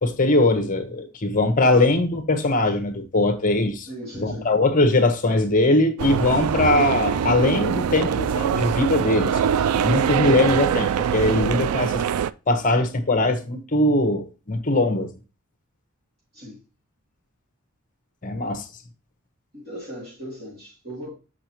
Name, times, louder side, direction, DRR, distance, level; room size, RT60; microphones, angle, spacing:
voice 1, 0.0-3.9 4.2-9.3 9.8-12.0 12.5-15.1 18.2-18.6, left 2 dB, 40° left, 1.0 m, -21 dB
voice 2, 1.5-1.9 3.8-4.5 16.3-16.6 19.5-21.1, equal, 45° right, 2.9 m, -38 dB
sound 1, 6.0-12.3, right 8 dB, 80° right, 0.3 m, -23 dB
7.7 x 5.7 x 2.9 m
head